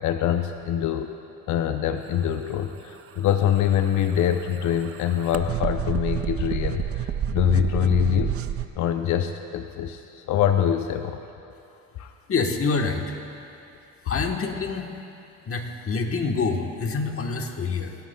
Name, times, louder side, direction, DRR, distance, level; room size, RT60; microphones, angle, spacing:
voice 1, 0.0-1.2 1.5-8.4 8.8-11.2 12.0-12.1, left 9 dB, 65° left, 7 dB, 0.6 m, -24 dB
sound 1, 3.5-8.7, right 10 dB, 45° right, 0.4 m, -29 dB
voice 2, 12.3-13.2 14.0-14.9 15.5-18.0, left 4 dB, 45° left, 4 dB, 1.2 m, -26 dB
23.5 x 11.5 x 2.2 m, 2.7 s
cardioid pair, 95°, 33 cm